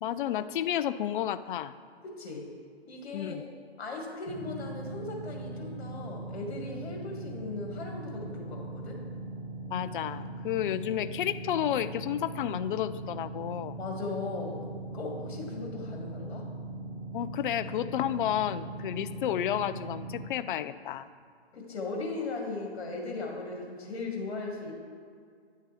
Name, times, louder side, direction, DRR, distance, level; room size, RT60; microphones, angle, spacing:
voice 1, 0.0-1.7 3.1-3.4 9.7-13.8 17.1-21.1, left 11 dB, 55° left, 14 dB, 0.4 m, -31 dB
voice 2, 2.0-2.5 2.9-3.4 3.8-9.0 13.8-14.7 14.9-16.5 21.5-24.7, left 3 dB, 75° left, 0 dB, 2.2 m, -38 dB
sound 1, 4.3-20.3, right 2 dB, 60° right, 1.0 m, -40 dB
10.0 x 6.5 x 3.5 m, 2.1 s
hypercardioid pair, 135°, 32 cm